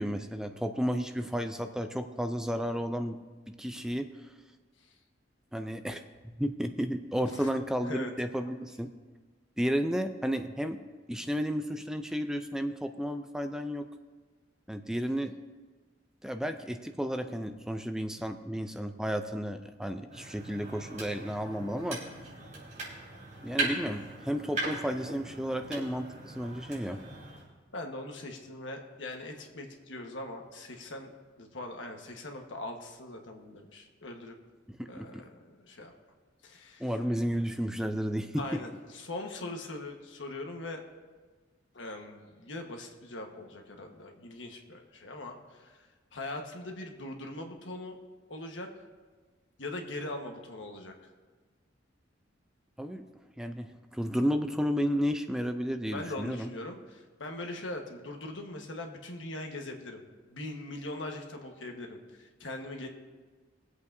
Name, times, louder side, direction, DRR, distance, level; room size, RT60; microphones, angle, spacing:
voice 1, 0.0-3.2 3.5-4.1 5.5-8.9 9.6-10.8 11.1-13.9 14.7-15.3 16.2-22.0 23.4-27.0 34.7-35.1 36.8-38.6 52.8-53.0 53.4-56.5, equal, 5° right, 7 dB, 0.4 m, -32 dB
sound 1, 20.1-27.5, right 2 dB, 40° right, 3.8 m, -39 dB
voice 2, 27.7-34.4 34.9-35.9 36.4-36.9 38.4-40.8 41.7-45.8 46.1-48.0 48.3-48.7 49.6-50.9 55.9-60.0 60.3-62.9, left 2 dB, 70° left, 3 dB, 1.3 m, -41 dB
23.0 x 8.1 x 2.7 m, 1.4 s
head